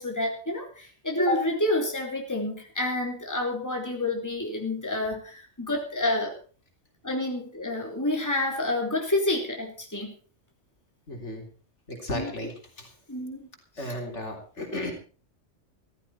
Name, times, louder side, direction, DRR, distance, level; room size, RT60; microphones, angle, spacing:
voice 1, 0.0-6.3 7.0-10.1 12.1-12.3 13.1-13.5 13.8-13.9, left 1 dB, 15° left, 2 dB, 3.2 m, -28 dB
voice 2, 11.1-11.5 11.9-12.9 13.8-14.9, left 1 dB, 65° left, 2 dB, 3.9 m, -34 dB
15.0 x 14.5 x 4.3 m, 0.38 s
omnidirectional pair, 1.3 m